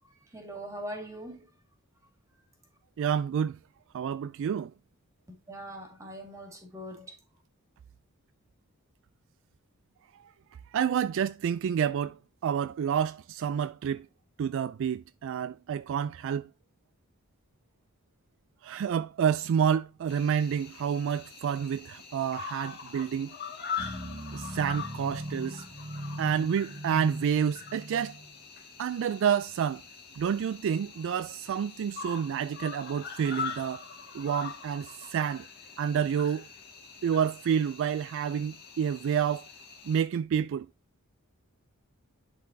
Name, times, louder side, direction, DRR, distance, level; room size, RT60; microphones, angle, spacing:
voice 1, 0.3-1.5 5.5-7.2, right 1 dB, 15° right, 2.0 m, -41 dB
voice 2, 3.0-3.6 3.9-4.7 10.7-12.2 12.4-14.1 14.4-16.5 18.6-23.3 24.3-25.6 26.2-28.1 28.8-29.8 30.1-33.8 34.1-35.5 35.8-36.5 37.0-39.4 39.9-40.7, right 8 dB, 60° right, 0.3 m, -29 dB
Cricket, 20.1-40.0, left 6 dB, 50° left, 1.8 m, -43 dB
sound 1, 23.8-28.4, equal, 45° right, 1.3 m, -39 dB
10.5 x 4.0 x 2.7 m
head